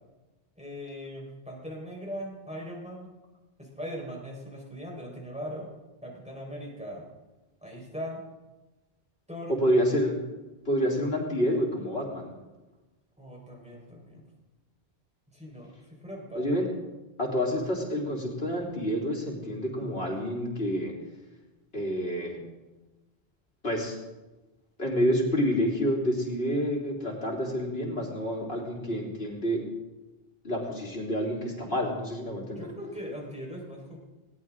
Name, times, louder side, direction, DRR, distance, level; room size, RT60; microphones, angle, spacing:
voice 1, 0.6-3.1 3.6-5.7 6.0-7.0 7.6-8.2 9.3-9.5 13.2-14.3 15.3-16.6 32.5-34.0, equal, 5° right, -2 dB, 4.5 m, -40 dB
voice 2, 9.5-10.2 10.7-12.3 16.4-16.7 17.2-20.9 21.7-22.4 23.6-24.0 24.8-29.6 30.4-32.7, equal, 70° left, -2 dB, 3.9 m, -28 dB
20.0 x 18.5 x 3.7 m, 1.1 s
omnidirectional pair, 1.0 m